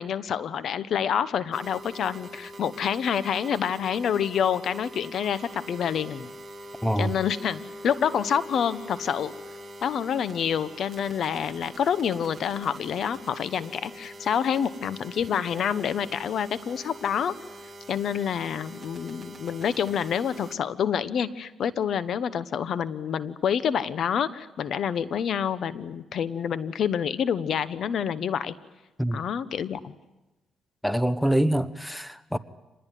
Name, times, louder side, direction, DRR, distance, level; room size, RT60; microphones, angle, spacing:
voice 1, 0.0-6.3 7.0-9.3 9.8-17.3 17.9-28.5 29.1-29.9, left 8 dB, 65° left, 1.0 m, -27 dB
sound 1, 1.5-20.6, equal, 30° right, 2.8 m, -44 dB
voice 2, 30.8-32.4, right 1 dB, ahead, 1.1 m, -25 dB
26.5 x 20.5 x 9.3 m
cardioid pair, 90°, 0 cm